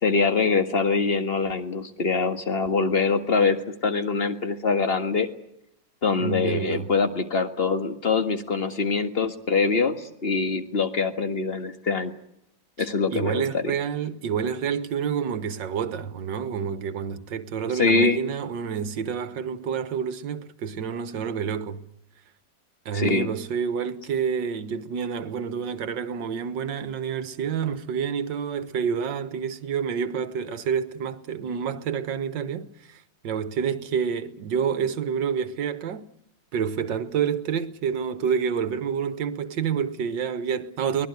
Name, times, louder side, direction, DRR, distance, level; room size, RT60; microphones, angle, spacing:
voice 1, 0.0-5.3 6.0-12.1 12.8-13.6 17.8-18.2 22.9-23.3, left 4 dB, 30° left, 1.9 m, -24 dB
voice 2, 6.2-6.9 12.8-12.9 13.1-21.9 22.9-36.1 36.5-41.1, right 7 dB, 75° right, 1.9 m, -28 dB
24.0 x 20.0 x 9.5 m
omnidirectional pair, 2.0 m